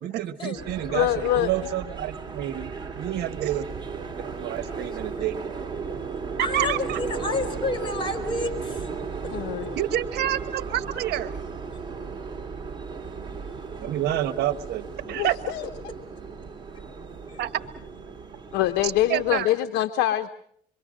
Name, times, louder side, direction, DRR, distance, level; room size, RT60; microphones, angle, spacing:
voice 1, 0.0-5.4 6.5-7.0 9.8-11.4 13.8-15.4 17.4-17.6 18.8-19.5, right 12 dB, 75° right, 12 dB, 1.3 m, -29 dB
sound 1, 0.6-19.5, right 5 dB, 25° right, 3.3 m, -35 dB
voice 2, 0.9-1.5 9.3-9.7 15.0-15.7 18.5-20.3, left 13 dB, 90° left, 8 dB, 1.0 m, -24 dB
voice 3, 4.7-5.3 6.4-8.9 17.3-17.6, left 2 dB, 30° left, 3 dB, 5.1 m, -31 dB
26.5 x 23.5 x 6.4 m, 0.68 s
cardioid pair, 110°, 17 cm